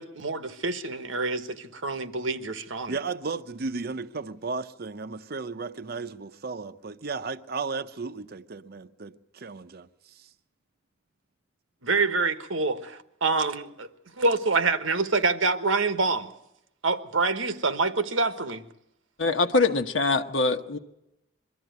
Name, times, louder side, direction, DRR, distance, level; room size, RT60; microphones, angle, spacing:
voice 1, 0.0-2.9 11.8-13.9 14.2-16.3 16.8-18.7, right 3 dB, 90° right, 1.3 m, -26 dB
voice 2, 2.9-10.3, right 4 dB, 50° right, 0.7 m, -35 dB
voice 3, 19.2-20.8, left 3 dB, 75° left, 1.1 m, -23 dB
23.0 x 13.5 x 9.3 m
head